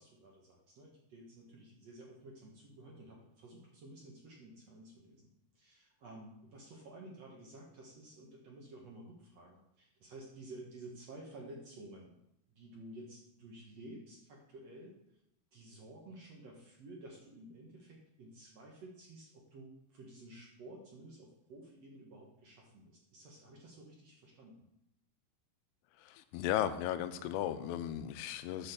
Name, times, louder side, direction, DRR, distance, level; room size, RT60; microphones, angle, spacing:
voice 1, 0.0-12.2 12.5-15.0 15.5-24.6, right 1 dB, 55° right, -1 dB, 2.0 m, -53 dB
voice 2, 26.0-28.7, left 11 dB, 90° left, 11 dB, 2.7 m, -36 dB
8.8 x 6.5 x 6.9 m, 0.80 s
omnidirectional pair, 4.7 m